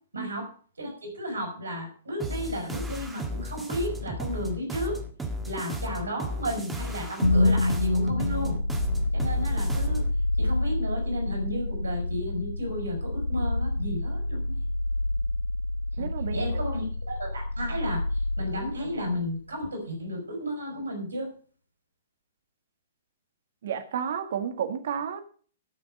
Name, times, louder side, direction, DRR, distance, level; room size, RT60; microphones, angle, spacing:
voice 1, 0.1-0.5 0.8-5.0 5.5-8.6 9.1-10.0 10.4-14.6 16.0-21.3, equal, 75° right, 4.4 m, -33 dB
sound 1, 2.2-10.1, equal, 5° right, 1.7 m, -34 dB
sound 2, 7.2-19.3, left 2 dB, 85° left, 0.9 m, -28 dB
voice 2, 16.0-16.5 23.6-25.2, right 8 dB, 55° right, 1.5 m, -31 dB
13.5 x 6.0 x 6.3 m
figure-of-eight pair, 110°, 0 cm